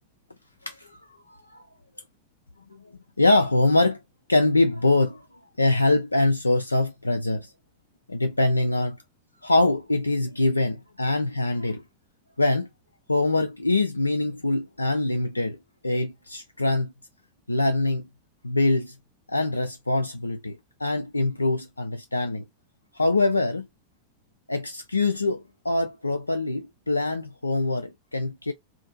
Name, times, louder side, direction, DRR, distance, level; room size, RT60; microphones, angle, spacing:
voice 1, 0.7-1.6 3.2-4.0 4.3-5.2 5.6-7.5 8.1-9.0 9.4-11.8 12.4-12.7 13.1-15.6 15.8-16.9 17.5-18.1 18.4-18.9 19.3-22.4 22.9-23.7 24.5-28.5, left 2 dB, 80° left, 0.3 m, -24 dB
2.6 x 2.5 x 2.5 m
figure-of-eight pair, 90°, 0 cm